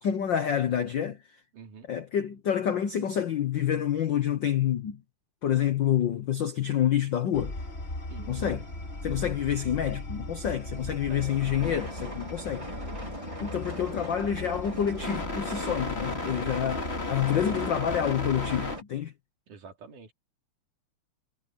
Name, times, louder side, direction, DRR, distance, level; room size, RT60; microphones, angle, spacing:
voice 1, 0.0-1.2 1.9-5.0 5.4-7.5 8.3-8.6 9.0-12.7 13.0-13.1 13.4-19.1, left 9 dB, 80° left, 1.0 m, -28 dB
voice 2, 1.5-1.9 8.1-8.3 10.7-11.3 12.5-13.1 19.5-20.1, right 5 dB, 90° right, 4.7 m, -48 dB
sound 1, 7.3-18.8, left 2 dB, 20° left, 2.6 m, -36 dB
sound 2, 11.1-18.8, equal, 10° right, 3.2 m, -40 dB
omnidirectional pair, 3.5 m